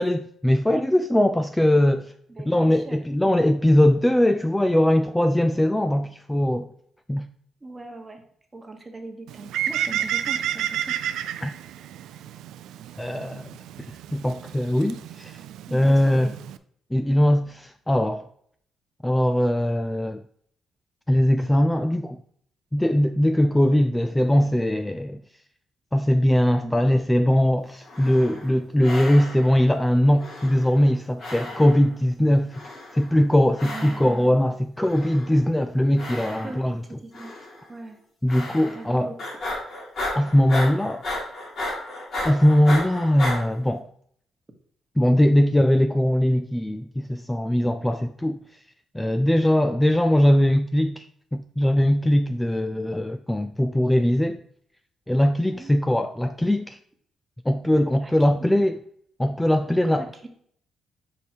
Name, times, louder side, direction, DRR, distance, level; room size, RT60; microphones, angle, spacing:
voice 1, 0.0-2.1 2.5-6.7 7.1-7.3 11.4-11.5 13.0-13.5 14.1-15.4 15.7-16.3 16.9-18.3 19.0-20.2 21.1-22.2 22.7-25.2 25.9-32.6 32.9-36.7 38.2-39.1 40.2-41.0 42.2-43.9 45.0-48.4 48.9-51.1 51.3-54.4 55.1-56.8 57.5-58.8 59.2-60.0, left 1 dB, 10° left, 0.4 m, -21 dB
voice 2, 2.3-3.5 7.6-8.2 8.5-11.0 15.7-16.4 26.6-26.8 33.6-34.5 36.4-37.3 37.7-38.0 38.7-39.2 55.5-55.7 58.0-58.5 59.8-60.3, right 2 dB, 20° right, 1.3 m, -40 dB
Bird, 9.3-16.6, right 10 dB, 85° right, 0.3 m, -31 dB
sound 1, 27.8-28.5 28.8-29.6 30.2-30.9 31.2-31.9 32.5-33.2 33.6-34.2 34.8-35.5 36.0-36.7 37.1-37.6 38.3-38.9 39.2-43.4, left 1 dB, 55° left, 2.6 m, -34 dB
5.3 x 4.8 x 4.5 m
cardioid pair, 90°, 0 cm